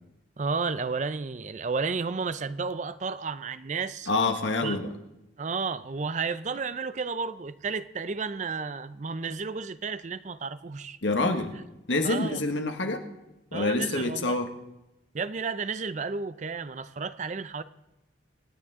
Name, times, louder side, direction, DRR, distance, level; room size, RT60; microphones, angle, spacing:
voice 1, 0.4-4.1 4.6-4.8 5.4-11.0 12.0-12.4 13.5-14.4 15.1-17.6, right 4 dB, 40° right, 0.5 m, -32 dB
voice 2, 4.1-4.9 11.0-11.5 11.9-13.0 13.5-14.5, left 2 dB, 75° left, 1.6 m, -26 dB
25.5 x 9.7 x 3.6 m
head